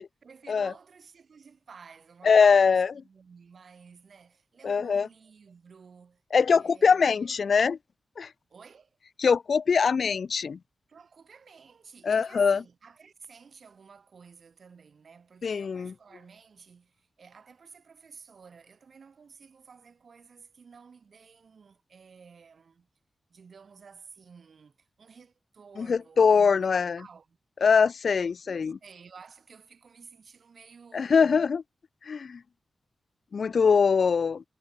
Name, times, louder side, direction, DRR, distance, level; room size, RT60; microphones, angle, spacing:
voice 1, 0.0-6.2 6.5-7.3 8.5-9.0 10.9-22.9 23.3-27.4 28.2-31.5, right 5 dB, 60° right, 6.0 m, -53 dB
voice 2, 2.2-2.9 4.6-5.1 6.3-7.8 8.2-8.3 9.2-10.6 12.0-12.6 15.4-15.9 25.8-27.0 27.6-28.8 30.9-31.6 32.1-32.4 33.3-34.4, left 5 dB, 60° left, 0.5 m, -22 dB
wide cardioid pair, 145°, 0 cm